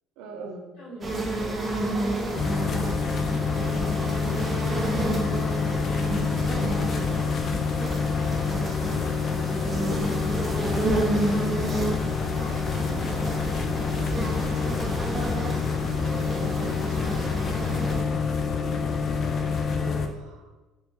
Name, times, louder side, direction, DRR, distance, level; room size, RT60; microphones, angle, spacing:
voice 1, 0.2-0.7 17.0-17.4 18.3-19.0 19.8-20.5, right 3 dB, 85° right, 3 dB, 0.6 m, -42 dB
voice 2, 0.7-4.1 4.6-6.0 6.6-7.6 8.4-9.8, left 1 dB, 75° left, -8 dB, 1.1 m, -46 dB
sound 1, 1.0-18.0, right 1 dB, 20° right, 0.5 m, -30 dB
sound 2, 2.3-20.1, left 5 dB, 35° left, 0.3 m, -27 dB
3.1 x 3.1 x 3.2 m, 1.2 s
cardioid pair, 160°, 0 cm